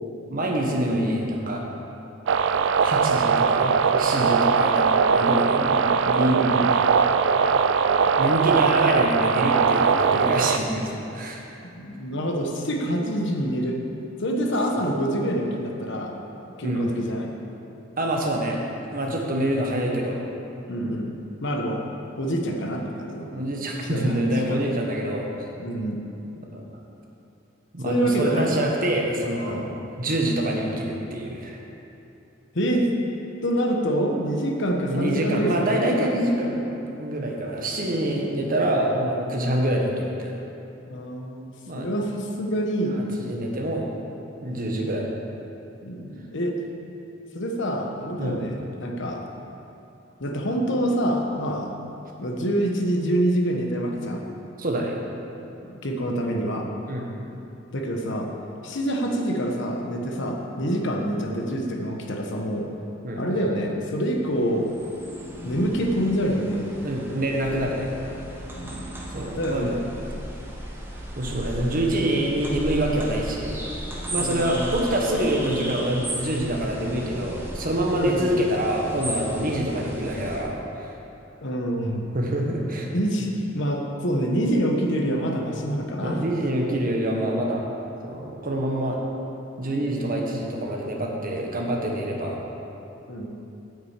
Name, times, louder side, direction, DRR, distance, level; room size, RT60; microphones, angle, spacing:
voice 1, 0.3-1.6 2.8-5.6 6.1-6.4 8.2-11.4 16.6-16.9 18.0-18.6 18.9-20.2 23.3-25.3 26.5-26.7 27.7-29.7 30.0-31.6 34.9-36.6 37.0-40.3 41.7-41.9 43.2-43.9 44.4-45.1 48.2-48.4 54.6-55.0 56.9-57.1 63.0-63.2 66.8-67.9 69.1-69.8 71.2-73.6 74.1-80.9 82.1-82.9 86.0-87.7 88.0-89.0 89.6-92.4, right 1 dB, 45° right, 0 dB, 1.4 m, -26 dB
sound 1, 2.3-10.6, right 6 dB, 65° right, 0.4 m, -20 dB
voice 2, 5.6-6.7 11.7-13.8 14.2-16.2 16.6-17.3 20.7-21.1 21.4-21.8 22.2-23.3 23.8-24.6 25.6-26.0 27.8-28.7 29.4-29.6 32.5-32.9 33.4-36.1 40.9-42.9 44.5-44.9 45.8-46.6 47.3-49.2 50.2-51.7 52.2-54.2 55.8-56.7 57.7-58.3 58.6-62.7 63.1-64.7 65.4-66.7 68.6-68.9 69.3-69.8 74.2-74.7 77.9-78.4 81.4-82.1 82.9-83.3 83.5-86.2 93.1-93.3, equal, 65° left, 1 dB, 1.2 m, -26 dB
sound 2, 64.0-80.4, right 1 dB, 10° right, 1.4 m, -35 dB
8.8 x 6.2 x 8.3 m, 2.8 s
head